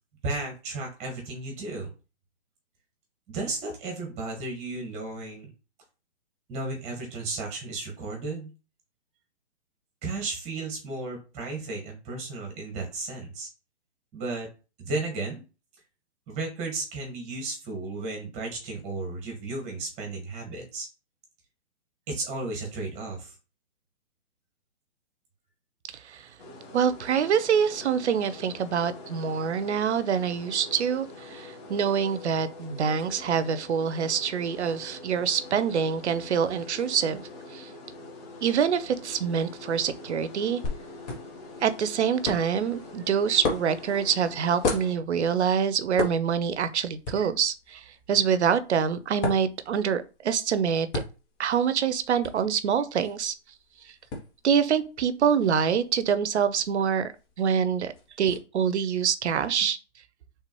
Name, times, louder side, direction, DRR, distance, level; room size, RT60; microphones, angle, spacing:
voice 1, 0.2-1.9 3.3-5.5 6.5-8.5 10.0-13.5 14.1-14.5 14.8-15.4 16.3-20.9 22.1-23.3, right 3 dB, 20° right, 1.4 m, -34 dB
sound 1, 26.4-44.9, left 2 dB, 35° left, 1.5 m, -44 dB
voice 2, 26.7-37.2 37.5-37.7 38.4-40.6 41.6-51.0 51.4-53.3 54.4-57.1 57.4-57.9 58.2-59.8, right 7 dB, 70° right, 0.7 m, -25 dB
sound 2, 40.6-58.4, left 3 dB, 20° left, 0.8 m, -38 dB
4.4 x 3.5 x 3.0 m
hypercardioid pair, 145°, 35 cm